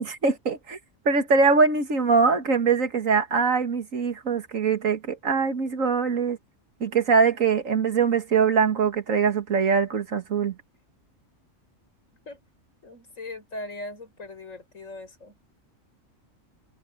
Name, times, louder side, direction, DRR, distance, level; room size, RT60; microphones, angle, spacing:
voice 1, 0.2-0.8 1.1-6.4 6.8-10.5, right 5 dB, 80° right, 2.2 m, -22 dB
voice 2, 12.8-15.4, left 2 dB, 75° left, 5.7 m, -39 dB
omnidirectional pair, 1.4 m